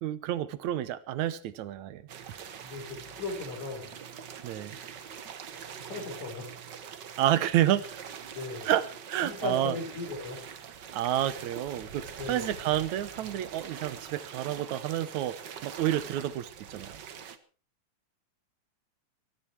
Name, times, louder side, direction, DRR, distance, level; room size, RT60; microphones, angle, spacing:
voice 1, 0.0-2.0 4.4-4.8 7.2-8.0 8.7-9.7 10.9-15.4 15.6-17.0, right 12 dB, 75° right, 15 dB, 2.3 m, -29 dB
sound 1, 2.1-17.4, right 7 dB, 50° right, 1.3 m, -44 dB
voice 2, 2.6-3.9 5.7-6.6 8.3-8.7 9.2-10.5 12.1-12.5, left 3 dB, 70° left, 4 dB, 5.8 m, -37 dB
21.5 x 13.5 x 4.6 m, 0.38 s
omnidirectional pair, 3.4 m